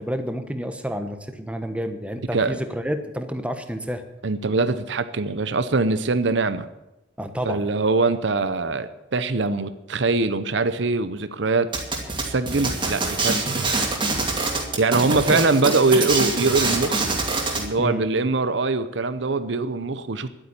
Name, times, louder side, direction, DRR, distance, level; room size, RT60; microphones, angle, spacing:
voice 1, 0.0-4.0 7.2-7.6 15.1-15.4 17.8-18.0, equal, 5° right, 7 dB, 1.1 m, -29 dB
voice 2, 4.2-6.7 7.5-11.7 12.2-13.5 14.8-17.1 17.5-20.3, right 3 dB, 65° right, 12 dB, 0.7 m, -22 dB
sound 1, 11.7-17.7, right 3 dB, 25° right, 2.4 m, -25 dB
11.5 x 8.6 x 9.9 m, 0.95 s
head